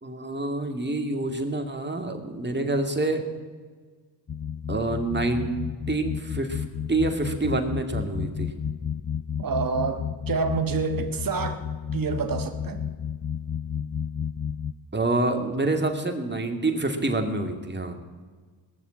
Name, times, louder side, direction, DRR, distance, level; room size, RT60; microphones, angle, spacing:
voice 1, 0.0-3.2 4.7-5.6 5.9-8.5 14.9-18.0, right 2 dB, 20° right, 5 dB, 2.3 m, -27 dB
sound 1, 4.3-14.7, left 7 dB, 25° left, 0.4 m, -32 dB
voice 2, 9.4-11.6 11.9-12.8, right 5 dB, 40° right, 5 dB, 1.5 m, -27 dB
18.5 x 7.2 x 8.7 m, 1.5 s
cardioid pair, 65°, 50 cm